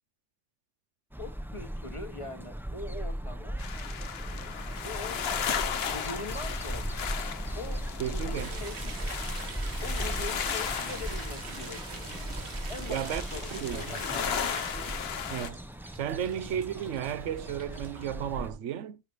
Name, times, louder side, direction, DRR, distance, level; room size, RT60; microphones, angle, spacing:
sound 1, 1.1-18.5, right 1 dB, ahead, 0.6 m, -38 dB
voice 1, 1.2-3.6 4.8-7.1 7.5-7.8 8.1-8.9 9.8-12.1 12.7-14.6, left 2 dB, 30° left, 1.1 m, -42 dB
sound 2, 3.6-15.5, left 7 dB, 60° left, 1.0 m, -36 dB
voice 2, 8.0-8.5 12.9-13.2 13.5-13.8 15.3-15.6 16.0-19.0, right 10 dB, 85° right, 1.0 m, -33 dB
sound 3, 8.4-18.1, right 5 dB, 65° right, 1.6 m, -44 dB
12.5 x 6.7 x 3.1 m
omnidirectional pair, 1.2 m